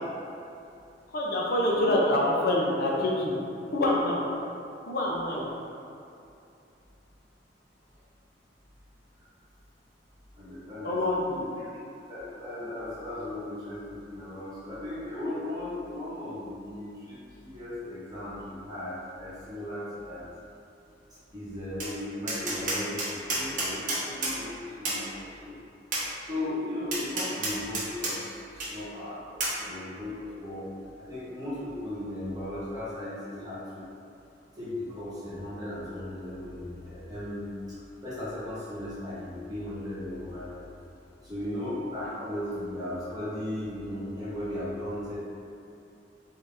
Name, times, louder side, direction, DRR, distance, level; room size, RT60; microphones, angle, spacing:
voice 1, 1.1-3.3 3.7-4.2 4.8-5.4 10.8-11.4, left 1 dB, 60° left, -4 dB, 0.7 m, -26 dB
voice 2, 10.3-11.7 12.1-20.3 21.3-25.6 26.2-30.7 31.0-33.9 34.6-40.6 41.2-45.2, left 1 dB, 20° right, -11 dB, 1.1 m, -37 dB
Tap, 21.8-21.9 22.3-24.4 24.8-25.0 25.9-26.1 26.9-28.1 28.6-28.7 29.4-29.6, right 2 dB, 50° right, 0.9 m, -30 dB
3.7 x 2.7 x 3.5 m, 2.7 s
head